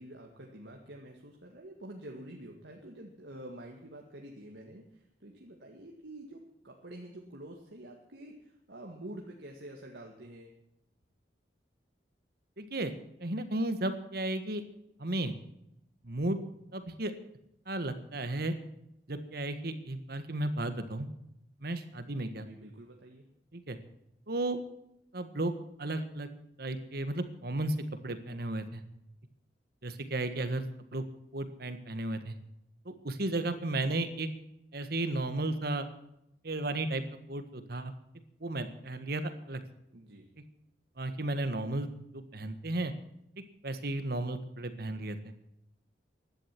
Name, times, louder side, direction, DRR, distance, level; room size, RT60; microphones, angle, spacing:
voice 1, 0.0-10.5 22.5-23.3 39.9-40.3, right 1 dB, 85° right, 1 dB, 2.0 m, -48 dB
voice 2, 12.6-12.9 13.2-14.6 15.0-15.3 16.0-16.4 16.7-17.1 17.7-18.5 19.1-21.1 21.6-22.5 23.5-23.8 24.3-24.6 25.1-25.5 25.8-26.3 26.6-27.7 28.0-28.8 29.8-30.6 30.9-31.0 31.3-32.3 32.8-34.3 34.7-35.9 36.4-37.0 37.3-37.9 38.4-39.6 41.0-42.9 43.6-45.3, right 2 dB, 60° right, 9 dB, 1.6 m, -34 dB
16.0 x 11.5 x 6.1 m, 0.79 s
head